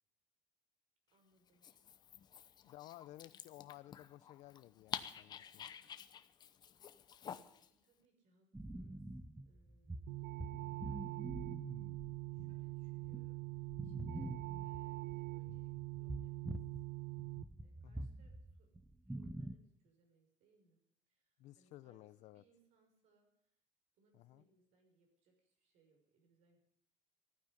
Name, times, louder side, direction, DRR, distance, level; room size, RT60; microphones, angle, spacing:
voice 1, 1.1-1.7 2.5-2.7 3.2-3.5 6.6-6.8 7.2-10.1 10.8-11.4 12.3-14.3 14.6-16.8 17.6-18.7 19.0-20.8 21.1-23.6 23.9-26.6, right 3 dB, 65° right, 2 dB, 6.2 m, -74 dB
Dog, 1.5-7.7, left 8 dB, 35° left, 0.8 m, -50 dB
voice 2, 2.6-5.7 17.8-18.1 21.4-22.4 24.1-24.4, left 15 dB, 65° left, 17 dB, 0.7 m, -56 dB
sound 1, 8.5-16.8 17.1-19.5, right 1 dB, 5° right, 0.7 m, -47 dB
sound 2, 10.1-17.4, right 23 dB, 85° right, 0.7 m, -44 dB
15.0 x 9.7 x 10.0 m, 0.76 s
cardioid pair, 165°, 13 cm